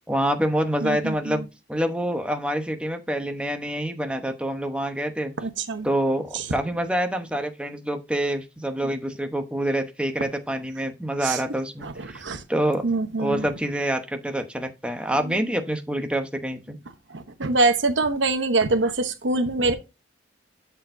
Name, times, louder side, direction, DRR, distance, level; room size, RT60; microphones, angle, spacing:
voice 1, 0.1-1.4 1.7-5.3 5.8-12.2 12.5-12.8 13.2-16.8, right 1 dB, 5° right, 0.9 m, -26 dB
voice 2, 0.8-1.4 5.4-5.9 6.3-6.5 11.2-11.4 11.8-12.4 12.8-13.5 15.2-15.3 17.1-19.7, right 3 dB, 90° right, 0.9 m, -24 dB
12.0 x 4.4 x 2.7 m
head